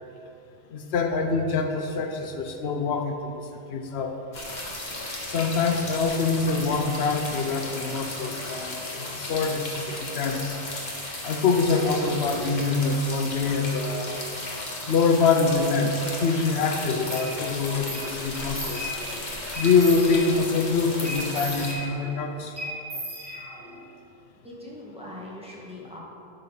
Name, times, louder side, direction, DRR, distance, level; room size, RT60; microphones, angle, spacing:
voice 1, 0.7-3.4 3.7-4.1 5.3-10.6 11.2-14.2 14.9-18.9 19.6-22.5, left 4 dB, 85° left, 5 dB, 0.9 m, -25 dB
sound 1, 4.3-21.7, left 2 dB, 45° left, 1.3 m, -35 dB
sound 2, 17.1-17.3 17.9-18.1 18.3-19.2 19.5-20.5 21.0-22.2 22.6-23.8, equal, 20° right, 2.0 m, -36 dB
voice 2, 24.4-26.0, left 1 dB, 5° right, -5 dB, 1.6 m, -41 dB
11.5 x 4.0 x 5.6 m, 2.8 s
omnidirectional pair, 1.0 m